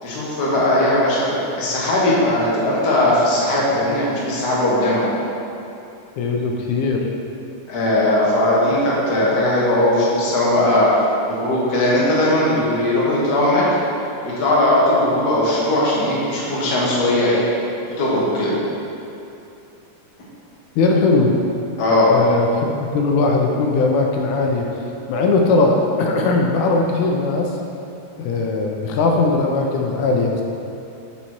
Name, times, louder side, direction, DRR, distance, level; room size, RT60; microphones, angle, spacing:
voice 1, 0.0-5.0 7.7-13.6 14.2-17.4 18.0-18.5 21.8-22.1, left 1 dB, 40° left, -7 dB, 1.6 m, -18 dB
voice 2, 6.2-7.0 20.8-21.3 22.1-24.7 25.1-27.5 28.2-30.4, left 3 dB, 80° left, 1 dB, 2.1 m, -19 dB
7.0 x 5.8 x 4.5 m, 2.7 s
omnidirectional pair, 3.4 m